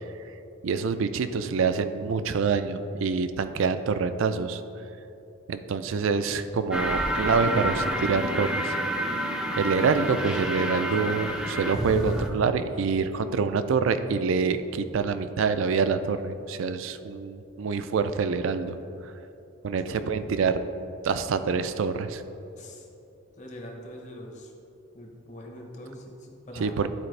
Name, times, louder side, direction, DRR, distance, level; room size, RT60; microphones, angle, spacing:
voice 1, 0.6-4.6 5.5-8.8 9.6-18.8 19.6-20.6 21.0-22.2 26.6-26.9, right 5 dB, 70° right, 10 dB, 0.4 m, -26 dB
sound 1, 6.7-12.3, equal, 5° right, 0.4 m, -29 dB
voice 2, 23.4-24.5 24.9-26.8, left 1 dB, 35° left, 0 dB, 0.9 m, -43 dB
11.5 x 4.3 x 3.2 m, 2.7 s
head